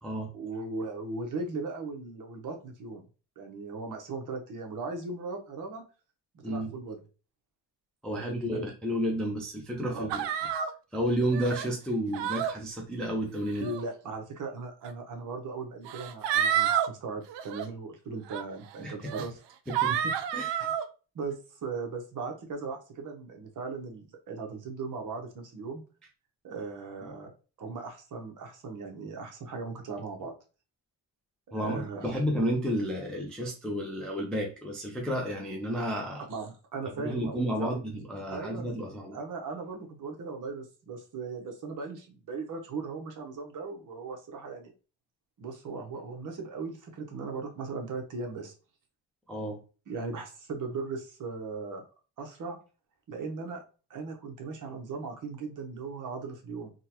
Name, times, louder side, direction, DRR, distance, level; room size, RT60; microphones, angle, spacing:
voice 1, 0.3-3.0 3.4-5.8 6.3-7.0 8.1-8.7 9.9-10.1 13.6-19.4 19.9-20.1 20.6-20.7 21.1-25.8 26.4-27.3 27.6-30.3 31.5-32.2 36.3-37.8 38.3-38.7 39.1-44.7 45.4-48.5 49.9-51.8 52.2-52.6 53.1-53.6 53.9-56.7, right 4 dB, 45° right, 3 dB, 0.8 m, -38 dB
voice 2, 8.0-10.2 10.9-13.7 18.8-18.9 19.7-19.9 20.3-20.7 31.5-36.2 37.0-39.2 49.3-49.6, equal, ahead, 0 dB, 0.4 m, -31 dB
sound 1, 10.1-10.7 11.3-11.7 12.1-12.5 13.4-13.8 14.8-14.9 15.9-16.9 17.3-17.6 18.3-18.4 19.0-19.3 19.7-20.8, right 9 dB, 70° right, 0.5 m, -29 dB
3.7 x 2.2 x 2.8 m, 0.34 s
cardioid pair, 150°, 45 cm